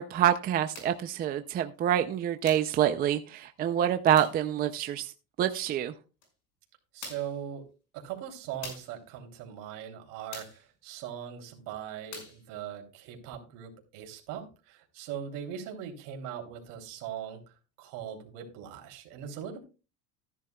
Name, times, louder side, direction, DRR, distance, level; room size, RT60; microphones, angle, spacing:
voice 1, 0.0-5.1 5.4-5.9, right 10 dB, 25° right, 9 dB, 0.4 m, -26 dB
sound 1, 0.7-1.0 2.5-2.8 4.2-4.4 6.2-6.3 7.0-7.4 8.6-9.0 10.3-10.7 12.1-12.4, left 4 dB, 65° left, 5.8 m, -44 dB
voice 2, 6.9-7.6 7.9-17.4 17.8-19.6, right 9 dB, 65° right, 3 dB, 3.1 m, -40 dB
14.5 x 10.5 x 2.3 m, 0.32 s
cardioid pair, 155°, 35 cm